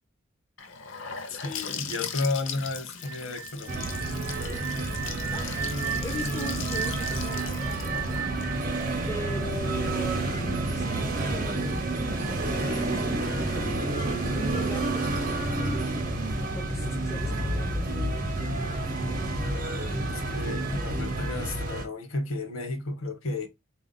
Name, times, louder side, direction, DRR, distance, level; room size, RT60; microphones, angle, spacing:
Gurgling / Sink (filling or washing) / Bathtub (filling or washing), 0.6-10.4, left 6 dB, 60° left, 0.6 m, -39 dB
voice 1, 1.3-3.9 19.4-23.5, left 2 dB, 80° left, 1.0 m, -33 dB
sound 1, 3.0-9.9, right 8 dB, 75° right, 0.4 m, -37 dB
sound 2, 3.7-21.9, right 2 dB, 40° right, 0.7 m, -29 dB
voice 2, 5.3-8.3 9.1-16.1 16.5-18.2, left 1 dB, 15° left, 0.3 m, -40 dB
3.7 x 2.4 x 3.9 m
head